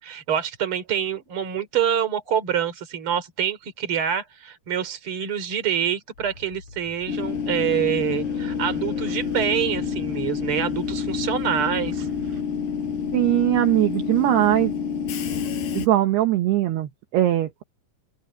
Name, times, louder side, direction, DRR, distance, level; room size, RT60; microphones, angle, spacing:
voice 1, 0.0-12.1, right 9 dB, 30° right, 3.1 m, -26 dB
sound 1, 6.1-14.0, left 4 dB, 40° left, 6.1 m, -46 dB
Train / Subway metro underground, 7.1-15.9, left 7 dB, 55° left, 5.6 m, -28 dB
sound 2, 7.3-12.4, right 4 dB, 55° right, 8.1 m, -45 dB
voice 2, 13.1-14.7 15.8-17.6, right 14 dB, 70° right, 2.8 m, -20 dB
open air
omnidirectional pair, 5.7 m